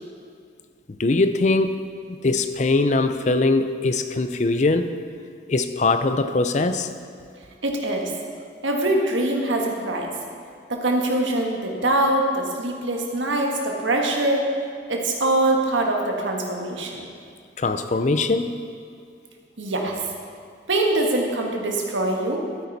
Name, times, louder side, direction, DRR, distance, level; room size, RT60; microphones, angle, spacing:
voice 1, 1.0-1.8 2.1-4.9 5.5-6.9 17.6-18.6, left 3 dB, 40° left, 9 dB, 0.5 m, -21 dB
voice 2, 7.6-8.1 8.6-10.1 10.7-14.5 14.9-17.1 19.6-20.0 20.7-22.5, right 1 dB, 90° right, 1 dB, 1.6 m, -23 dB
13.0 x 9.2 x 4.1 m, 2.3 s
head